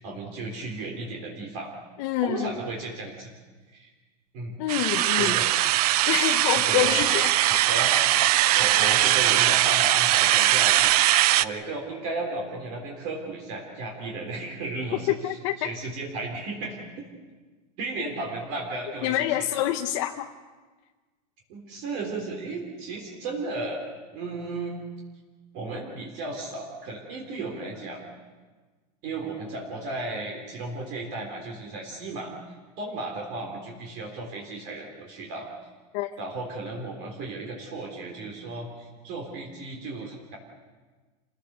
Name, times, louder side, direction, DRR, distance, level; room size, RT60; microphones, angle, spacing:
voice 1, 0.0-1.7 2.2-3.3 3.7-3.9 4.3-4.6 5.1-5.4 6.5-7.0 7.5-8.0 8.3-15.3 15.6-16.8 17.8-19.5 21.5-23.8 24.1-24.8 25.5-28.0 29.0-35.5 36.2-40.4, right 3 dB, 45° right, 0 dB, 3.7 m, -34 dB
voice 2, 2.0-2.5 4.6-5.4 6.1-7.4 15.1-15.7 19.0-20.3 35.9-36.1, left 13 dB, 50° left, 5 dB, 0.9 m, -26 dB
sound 1, 4.7-11.5, right 14 dB, 75° right, 0.7 m, -21 dB
28.0 x 17.0 x 6.8 m, 1.4 s
supercardioid pair, 165°, 20 cm